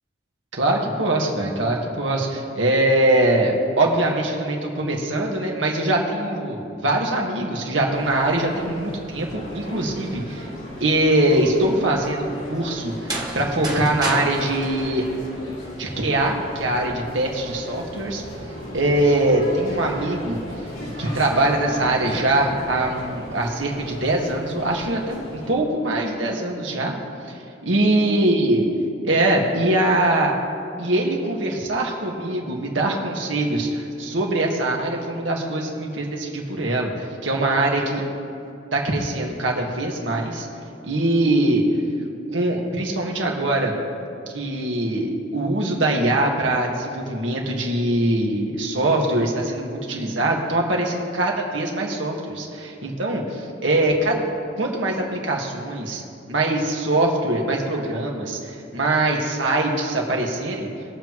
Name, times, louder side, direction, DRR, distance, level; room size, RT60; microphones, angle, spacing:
voice 1, 0.5-10.5 10.8-15.0 15.8-18.2 18.7-20.4 21.0-27.0 27.3-27.4 27.6-28.7 29.0-30.3 30.8-38.0 38.7-40.5 40.8-41.6 42.3-43.8 44.3-54.2 54.6-56.0 56.3-60.7, right 1 dB, 85° right, -1 dB, 1.8 m, -22 dB
sound 1, 7.9-25.5, equal, 80° left, 2.7 m, -37 dB
sound 2, 12.9-15.8, right 2 dB, 20° right, 1.2 m, -31 dB
21.5 x 7.5 x 3.1 m, 2.6 s
head